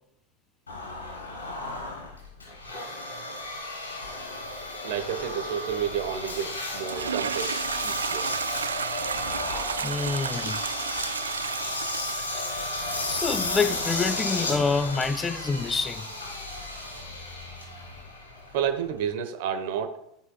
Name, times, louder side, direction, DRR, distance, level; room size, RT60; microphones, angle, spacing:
Engine, 0.7-19.1, left 2 dB, 85° left, 3.7 m, -34 dB
voice 1, 4.8-8.3 18.5-20.0, right 8 dB, 60° right, 1.0 m, -30 dB
sound 1, 5.4-18.0, equal, 45° left, 3.6 m, -52 dB
sound 2, 6.8-17.0, right 7 dB, 85° right, 0.4 m, -35 dB
voice 2, 9.8-10.6 12.2-12.4 13.1-16.1, left 4 dB, 20° left, 0.6 m, -27 dB
14.0 x 6.2 x 2.3 m
hypercardioid pair, 90°, 0 cm